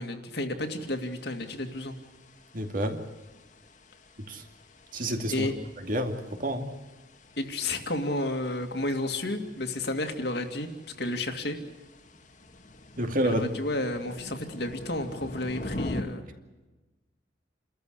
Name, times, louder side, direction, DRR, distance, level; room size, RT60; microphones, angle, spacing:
voice 1, 0.0-2.0 5.3-5.5 7.4-10.7 11.0-11.6 13.2-16.3, left 2 dB, 60° left, 5 dB, 2.5 m, -31 dB
sound 1, 0.7-16.0, left 1 dB, 40° left, 1.8 m, -44 dB
voice 2, 2.5-3.0 4.2-4.4 4.9-5.5 5.8-6.7 13.0-13.4, equal, 45° right, 5 dB, 2.5 m, -29 dB
29.5 x 14.0 x 8.4 m, 1.2 s
head